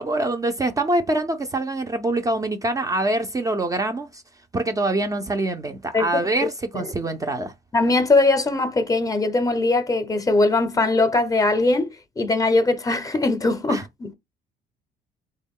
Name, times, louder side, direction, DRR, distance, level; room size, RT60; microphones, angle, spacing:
voice 1, 0.0-4.2 4.5-7.5 13.7-13.8, right 2 dB, 20° right, 0.4 m, -24 dB
voice 2, 7.7-14.1, left 2 dB, 20° left, 0.6 m, -21 dB
3.4 x 2.2 x 3.6 m
cardioid pair, 110°, 17 cm